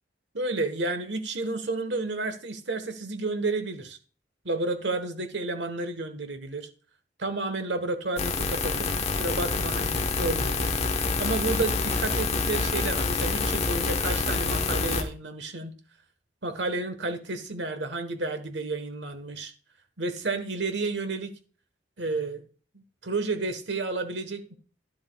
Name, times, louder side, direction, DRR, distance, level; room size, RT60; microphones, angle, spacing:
voice 1, 0.3-4.0 4.4-6.7 7.2-15.7 16.4-19.5 20.0-21.3 22.0-22.4 22.7-24.6, right 3 dB, 75° right, 1.4 m, -31 dB
sound 1, 8.2-15.0, left 3 dB, 35° left, 1.2 m, -27 dB
11.5 x 10.5 x 2.4 m
head